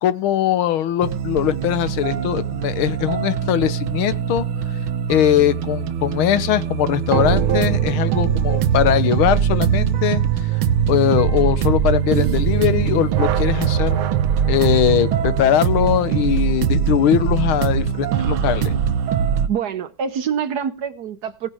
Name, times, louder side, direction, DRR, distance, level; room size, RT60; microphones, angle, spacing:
voice 1, 0.0-4.5 5.1-10.2 10.9-14.0 14.5-18.8, left 11 dB, 90° left, 1.8 m, -20 dB
sound 1, 1.0-19.5, right 9 dB, 85° right, 1.8 m, -21 dB
voice 2, 19.5-21.5, right 7 dB, 60° right, 1.2 m, -25 dB
17.0 x 9.9 x 4.9 m
omnidirectional pair, 2.2 m